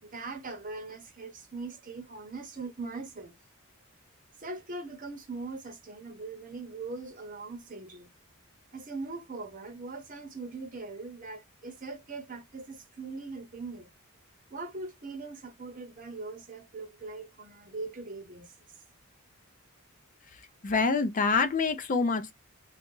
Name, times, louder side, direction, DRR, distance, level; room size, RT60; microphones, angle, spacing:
voice 1, 0.0-3.3 4.4-8.1 8.7-13.9 14.5-18.5, right 3 dB, 35° right, 0.9 m, -41 dB
voice 2, 20.3-22.3, left 4 dB, 35° left, 0.5 m, -27 dB
2.7 x 2.3 x 3.7 m
head